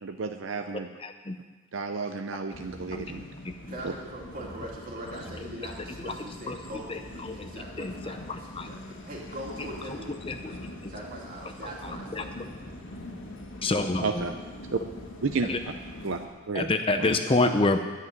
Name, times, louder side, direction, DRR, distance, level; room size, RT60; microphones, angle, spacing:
voice 1, 0.0-0.9 1.7-3.3 3.8-3.9 14.0-14.3 14.7-14.8 15.2-15.5 16.0-16.2 16.5-16.7 17.0-17.2, right 4 dB, 70° right, 6 dB, 0.6 m, -31 dB
voice 2, 1.0-1.4 2.9-3.5 5.6-5.7 6.0-6.1 6.5-6.6 6.9-7.5 7.8-8.7 9.9-10.0 10.3-10.6 11.8-12.2 13.6-14.2 15.5-15.6 16.5-17.8, left 2 dB, 25° left, 7 dB, 0.6 m, -28 dB
sound 1, 2.5-16.3, left 1 dB, 65° left, 1.7 m, -43 dB
voice 3, 3.7-10.6 10.9-12.4, right 1 dB, 40° right, -3 dB, 2.6 m, -42 dB
10.5 x 8.0 x 9.6 m, 1.3 s
head